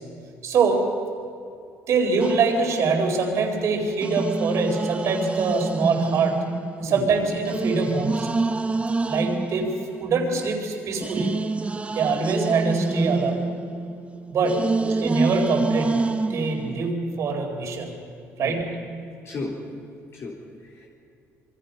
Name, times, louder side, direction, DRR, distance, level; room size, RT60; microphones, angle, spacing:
voice 1, 0.4-0.9 1.9-6.5 6.8-8.3 9.1-11.4 11.9-13.4 14.3-16.0 16.3-17.9 18.4-18.8, right 4 dB, 55° right, 3 dB, 4.2 m, -24 dB
sound 1, 2.2-3.4 4.0-10.5 11.0-16.9, right 3 dB, 20° right, 0.9 m, -28 dB
voice 2, 19.2-19.6 20.1-20.9, left 3 dB, 45° left, -2 dB, 3.8 m, -35 dB
27.0 x 22.5 x 5.7 m, 2.5 s
cardioid pair, 110°, 6 cm